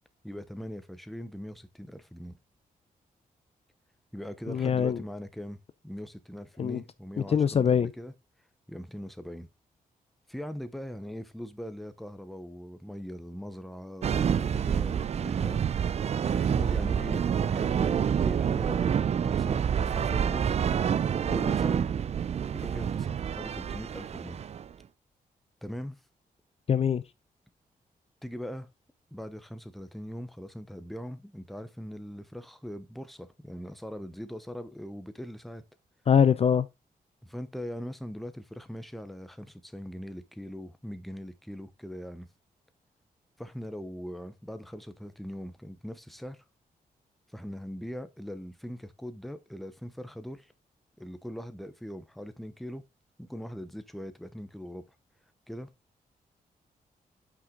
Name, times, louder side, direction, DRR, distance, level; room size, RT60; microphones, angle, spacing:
voice 1, 0.2-2.4 4.1-8.1 8.7-9.5 10.3-16.0 16.3-20.6 21.3-21.9 22.5-24.4 25.6-26.0 28.2-28.7 29.1-35.6 37.2-42.3 43.4-46.4 47.3-50.5 51.0-52.8 53.2-54.9 55.5-55.7, equal, ahead, 0.8 m, -41 dB
voice 2, 4.5-5.0 6.6-6.8 7.3-7.9 26.7-27.0 36.1-36.7, left 7 dB, 45° left, 0.5 m, -23 dB
sound 1, 14.0-24.7, right 8 dB, 45° right, 0.4 m, -28 dB
8.1 x 6.0 x 3.7 m
wide cardioid pair, 150°, 15 cm